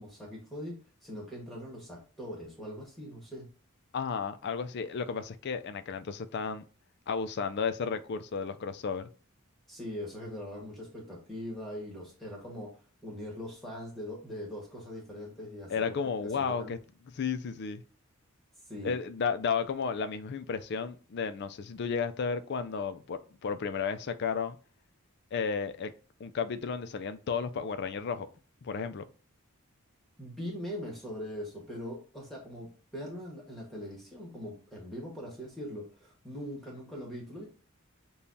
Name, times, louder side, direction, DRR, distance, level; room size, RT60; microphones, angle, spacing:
voice 1, 0.0-3.5 9.7-12.7 13.0-15.8 16.4-16.7 18.7-18.9 30.2-37.4, equal, ahead, 1.3 m, -41 dB
voice 2, 3.9-6.6 7.1-9.1 15.7-16.8 17.1-17.8 18.8-24.6 25.3-25.9 26.2-28.3 28.6-29.0, left 5 dB, 50° left, 0.4 m, -33 dB
6.8 x 2.3 x 2.7 m
head